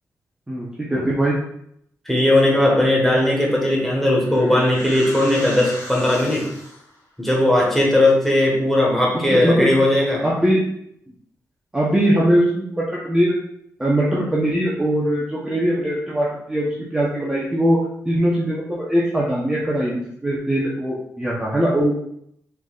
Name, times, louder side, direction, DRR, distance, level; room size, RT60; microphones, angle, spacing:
voice 1, 0.5-1.3 9.1-9.7 10.2-10.6 11.7-13.3 13.8-17.8 18.0-21.9, right 1 dB, 10° right, -5 dB, 0.8 m, -21 dB
voice 2, 2.0-6.5 7.2-10.2, left 1 dB, 5° left, -3 dB, 1.4 m, -18 dB
sound 1, 3.8-7.0, equal, 60° left, 1.5 m, -36 dB
4.6 x 4.0 x 2.4 m, 0.73 s
cardioid pair, 100°, 6 cm